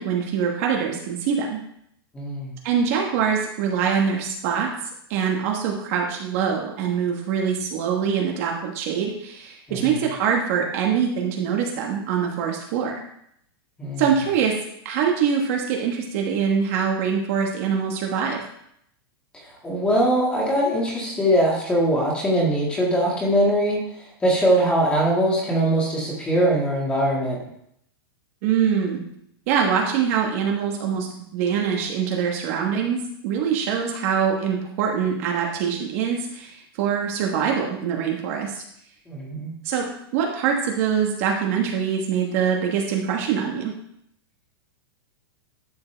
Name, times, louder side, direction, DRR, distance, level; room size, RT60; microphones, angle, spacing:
voice 1, 0.0-1.6 2.6-4.7 5.1-12.9 14.0-14.6 14.8-18.4 28.4-29.0 29.5-38.6 39.6-39.9 40.1-43.7, right 7 dB, 35° right, 0 dB, 1.2 m, -24 dB
voice 2, 2.1-2.6 9.7-10.0 13.8-14.1 19.6-27.5 39.1-39.5, right 1 dB, 10° left, -3 dB, 2.0 m, -22 dB
11.5 x 7.0 x 3.4 m, 0.74 s
supercardioid pair, 175°, 13 cm